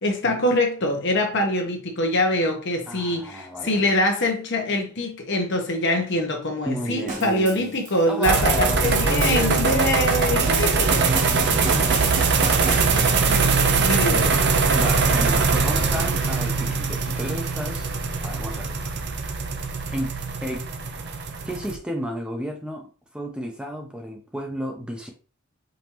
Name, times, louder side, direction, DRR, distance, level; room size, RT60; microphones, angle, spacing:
voice 1, 0.0-11.0 13.1-14.3, left 1 dB, 60° left, 1.1 m, -24 dB
voice 2, 2.9-3.9 6.6-7.7 8.1-13.2 14.1-14.4 14.7-17.9 18.2-18.9 19.9-20.6 21.5-25.1, equal, 5° right, 0.6 m, -32 dB
sound 1, 7.1-13.3, right 3 dB, 40° right, 1.2 m, -34 dB
old Eicher tractor, 8.2-21.8, right 4 dB, 55° right, 0.6 m, -22 dB
5.2 x 2.8 x 3.0 m
head